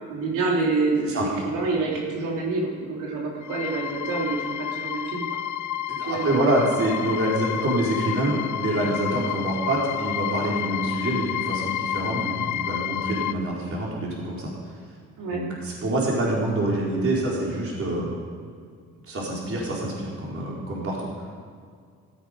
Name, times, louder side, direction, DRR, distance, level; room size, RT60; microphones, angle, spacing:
voice 1, 0.1-5.3 6.0-6.3 15.2-15.4, right 3 dB, 90° right, -2 dB, 3.4 m, -27 dB
sound 1, 3.4-13.3, left 11 dB, 75° left, 0.6 m, -30 dB
voice 2, 5.9-14.8 15.3-18.2 19.0-21.1, right 1 dB, 45° right, -4 dB, 4.5 m, -26 dB
16.0 x 14.5 x 5.2 m, 2.2 s
cardioid pair, 90°, 30 cm